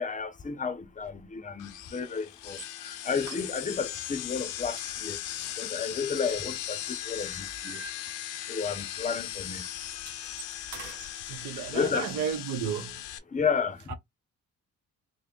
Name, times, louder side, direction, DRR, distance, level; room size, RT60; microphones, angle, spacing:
voice 1, 0.0-2.6 2.8-5.2 5.6-6.8 7.1-7.8 8.5-9.6 11.7-12.1 13.3-13.8, left 5 dB, 25° left, 0.6 m, -32 dB
sound 1, 1.6-13.2, left 12 dB, 85° left, 0.5 m, -38 dB
sound 2, 2.5-2.7 3.2-3.9 4.3-4.5 4.8-6.8 7.2-8.6 8.9-9.1 9.4-11.1, right 5 dB, 65° right, 1.2 m, -47 dB
voice 2, 11.3-13.0 13.9-14.0, right 8 dB, 80° right, 0.7 m, -33 dB
3.4 x 2.1 x 3.6 m
cardioid pair, 90°, 30 cm